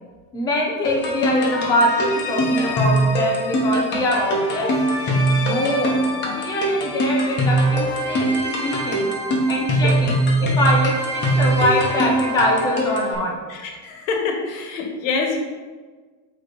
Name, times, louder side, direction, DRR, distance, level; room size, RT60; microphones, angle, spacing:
voice 1, 0.3-4.7 5.4-6.1 6.4-9.1 9.5-13.4, left 1 dB, 10° left, -1 dB, 0.5 m, -23 dB
sound 1, 0.8-13.1, right 1 dB, 25° left, 1.0 m, -22 dB
voice 2, 13.5-15.4, left 4 dB, 60° left, 2 dB, 1.4 m, -26 dB
8.3 x 3.2 x 4.1 m, 1.4 s
supercardioid pair, 165°, 45 cm